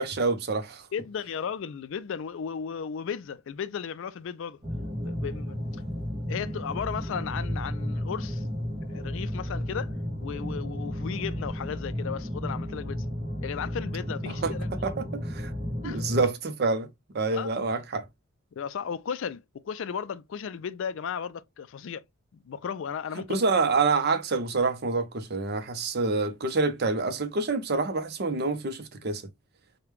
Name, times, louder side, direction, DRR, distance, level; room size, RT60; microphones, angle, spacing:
voice 1, 0.0-0.9 14.3-14.5 14.8-15.5 15.8-16.9 17.1-18.0 23.3-29.2, right 3 dB, 45° right, 0.6 m, -27 dB
voice 2, 0.9-4.6 5.0-5.6 6.3-8.4 8.9-9.9 10.2-13.1 13.4-14.7 15.8-16.0 17.3-17.5 18.6-22.0 22.5-23.4, left 7 dB, 60° left, 0.3 m, -35 dB
sound 1, 4.6-16.3, equal, 30° right, 1.0 m, -33 dB
4.9 x 2.2 x 3.1 m
head